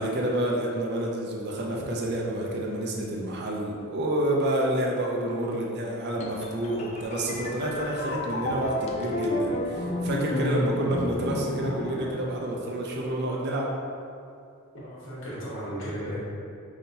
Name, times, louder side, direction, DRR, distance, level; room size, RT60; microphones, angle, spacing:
voice 1, 0.0-13.8, right 1 dB, 50° right, -2 dB, 0.5 m, -29 dB
sound 1, 6.2-12.9, left 1 dB, 30° left, 0.4 m, -31 dB
voice 2, 14.8-16.2, equal, 65° left, -9 dB, 1.4 m, -35 dB
5.3 x 2.8 x 2.7 m, 2.4 s
head